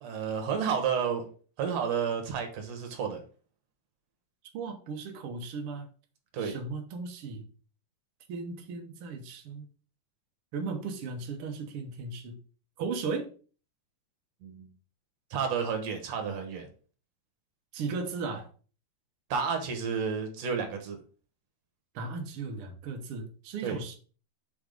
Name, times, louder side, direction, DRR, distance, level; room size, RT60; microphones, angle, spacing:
voice 1, 0.0-1.3 1.6-3.2 6.3-6.6 14.4-14.7 15.3-16.7 19.3-21.0 23.6-23.8, right 6 dB, 60° right, 2.0 m, -31 dB
voice 2, 4.5-5.8 6.4-7.4 8.3-9.7 10.5-12.4 12.8-13.3 17.7-18.5 21.9-24.0, right 4 dB, 90° right, 1.2 m, -36 dB
6.1 x 3.6 x 5.1 m
omnidirectional pair, 4.0 m